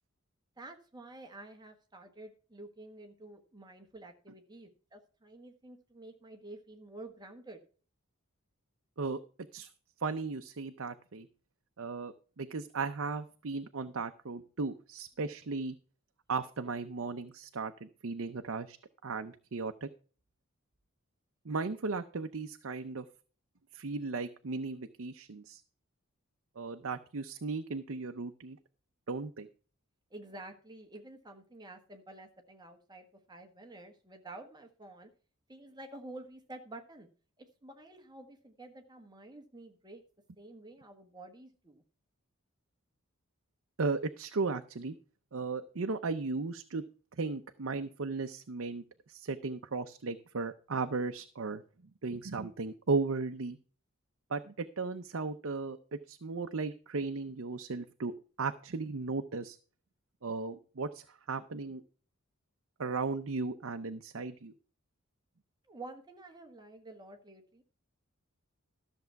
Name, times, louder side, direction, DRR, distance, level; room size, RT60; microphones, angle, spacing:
voice 1, 0.6-7.6 30.1-35.1 35.5-37.1 37.4-40.0 40.4-41.8 65.7-67.6, right 2 dB, 20° right, 4 dB, 1.3 m, -50 dB
voice 2, 10.0-11.3 11.8-15.7 16.3-18.8 19.0-19.9 21.4-23.0 23.7-25.6 26.6-28.6 29.1-29.5 43.8-45.0 45.3-46.8 47.2-48.8 49.1-51.6 52.0-53.6 54.3-58.1 58.4-59.6 60.2-61.8 62.8-64.5, right 4 dB, 65° right, 7 dB, 0.6 m, -36 dB
13.0 x 6.8 x 4.6 m, 0.40 s
head